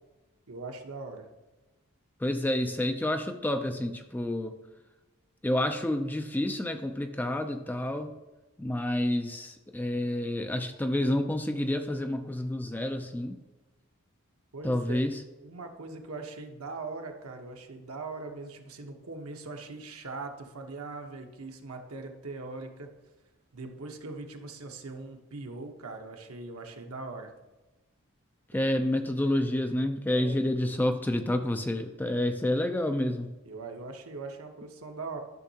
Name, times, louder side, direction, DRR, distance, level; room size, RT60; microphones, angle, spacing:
voice 1, 0.5-1.3 14.5-15.0 15.4-22.9 23.5-27.3 30.1-30.4 33.4-35.2, right 3 dB, 80° right, 3 dB, 1.0 m, -41 dB
voice 2, 2.2-4.6 5.4-8.2 8.6-13.4 14.6-15.2 28.5-33.4, left 1 dB, 10° left, 7 dB, 0.3 m, -29 dB
12.0 x 6.2 x 2.8 m, 1.1 s
head